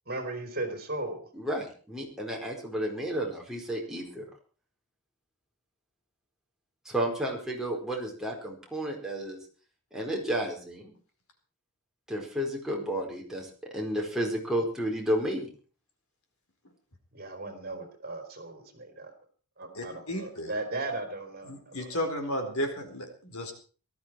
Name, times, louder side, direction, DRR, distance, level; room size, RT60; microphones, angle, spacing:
voice 1, 0.1-1.3 17.1-19.1 19.6-22.0, right 2 dB, 45° right, 6 dB, 3.8 m, -37 dB
voice 2, 1.3-4.2 6.8-9.4 9.9-10.9 12.1-13.5 13.7-15.5, right 1 dB, ahead, -1 dB, 4.6 m, -32 dB
voice 3, 19.7-20.5 21.4-23.5, equal, 70° left, 5 dB, 4.4 m, -33 dB
18.5 x 13.5 x 4.6 m, 0.40 s
head